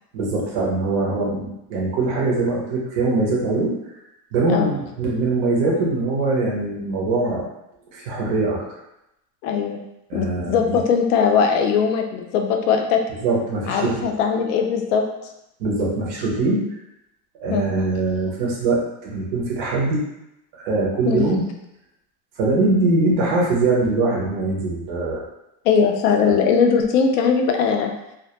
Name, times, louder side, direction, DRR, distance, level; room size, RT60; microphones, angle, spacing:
voice 1, 0.1-3.7 4.3-7.4 7.9-8.6 10.1-10.8 13.2-14.1 15.6-16.6 17.4-20.0 20.6-21.4 22.4-25.2, right 3 dB, 35° right, -3 dB, 0.4 m, -22 dB
voice 2, 9.4-9.8 10.1-13.0 13.7-15.0 17.5-17.7 21.1-21.3 25.6-27.9, left 6 dB, 75° left, 4 dB, 0.5 m, -20 dB
2.1 x 2.1 x 2.8 m, 0.86 s
supercardioid pair, 180°, 47 cm